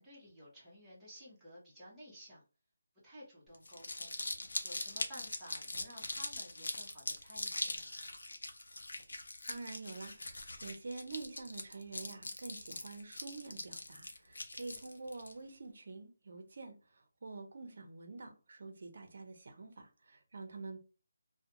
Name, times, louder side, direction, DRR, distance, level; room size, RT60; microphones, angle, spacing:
voice 1, 0.0-2.4 3.0-4.2 4.6-8.2, equal, 5° right, 0.8 m, -54 dB
Crumpling crinkling, 3.5-15.3, left 2 dB, 85° left, 0.6 m, -42 dB
voice 2, 9.5-20.8, right 3 dB, 45° right, 0.6 m, -47 dB
2.3 x 2.2 x 2.9 m
hypercardioid pair, 175°, 0 cm